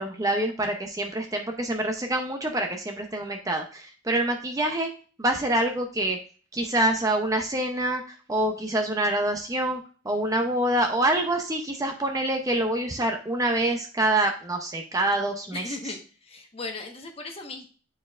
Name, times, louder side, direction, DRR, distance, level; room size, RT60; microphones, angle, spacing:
voice 1, 0.0-4.9 5.2-6.2 6.5-15.7, right 1 dB, 15° right, 4 dB, 0.6 m, -26 dB
voice 2, 15.5-17.7, left 3 dB, 30° left, 2 dB, 1.1 m, -37 dB
9.2 x 4.2 x 2.4 m, 0.39 s
head